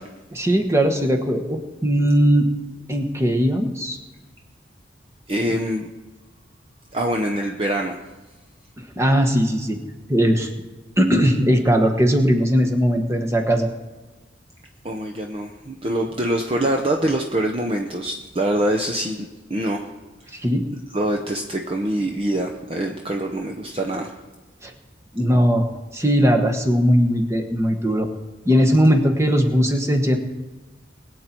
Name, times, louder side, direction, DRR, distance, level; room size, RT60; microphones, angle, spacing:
voice 1, 0.4-2.5 2.9-4.0 9.0-9.8 10.1-10.5 11.0-13.7 20.3-20.6 24.6-24.7 25.1-25.7 25.9-28.1 28.4-30.2, equal, 15° right, 4 dB, 1.3 m, -19 dB
voice 2, 5.3-5.8 6.9-8.0 14.8-19.9 20.9-24.1, right 1 dB, 30° right, 2 dB, 0.8 m, -24 dB
22.0 x 8.4 x 4.5 m, 1.2 s
head